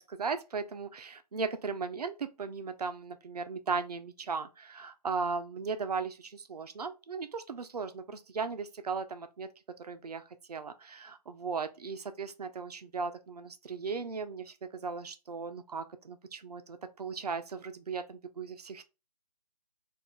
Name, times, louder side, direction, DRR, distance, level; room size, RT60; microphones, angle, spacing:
voice 1, 0.0-9.5 9.8-10.2 10.5-18.8, right 5 dB, 70° right, 0.5 m, -37 dB
2.4 x 2.4 x 3.6 m
figure-of-eight pair, 145°, 21 cm